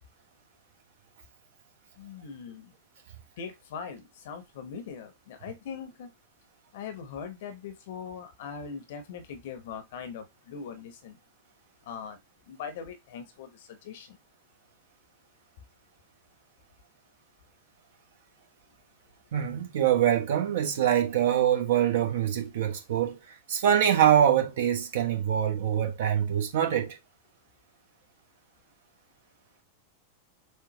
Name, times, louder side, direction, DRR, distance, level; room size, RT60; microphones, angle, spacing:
voice 1, 2.0-2.7 3.4-6.1 6.7-11.2 11.8-12.2 12.5-14.2, left 6 dB, 55° left, 0.9 m, -41 dB
voice 2, 19.3-27.0, right 10 dB, 55° right, 1.2 m, -24 dB
6.5 x 2.4 x 3.0 m
figure-of-eight pair, 90°, 0 cm